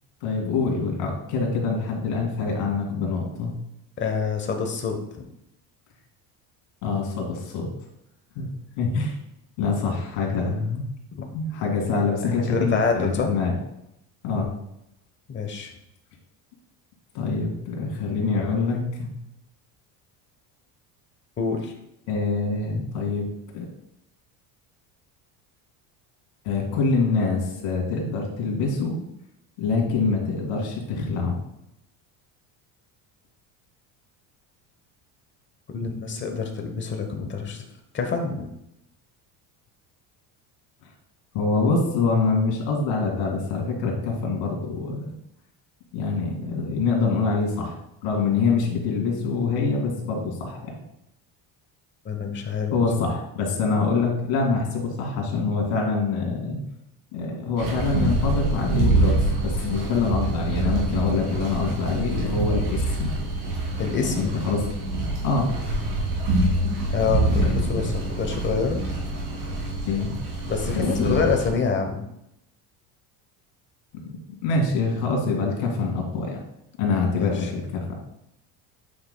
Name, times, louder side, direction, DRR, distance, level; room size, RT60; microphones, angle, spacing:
voice 1, 0.2-3.5 6.8-7.7 8.4-8.5 8.8-9.2 9.6-10.8 11.3-13.5 14.2-14.5 17.1-19.1 22.1-23.3 23.5-23.7 26.4-29.0 29.6-31.4 41.3-45.1 45.9-47.8 48.0-50.7 52.7-56.6 57.1-63.1 64.1-64.7 65.2-65.5 67.4-67.9 69.9-70.1 70.7-71.2 74.1-76.4 76.8-77.9, left 4 dB, 85° left, -1 dB, 2.2 m, -25 dB
voice 2, 4.0-5.0 11.1-11.2 12.2-13.3 15.3-15.7 21.4-21.7 35.7-37.7 37.9-38.5 52.0-52.8 63.8-64.4 66.9-68.8 70.5-72.1 77.1-77.5, left 5 dB, 25° left, 4 dB, 0.9 m, -26 dB
sound 1, 57.6-71.5, right 2 dB, 65° right, 2.3 m, -26 dB
8.5 x 5.0 x 2.2 m, 0.81 s
cardioid pair, 140°, 42 cm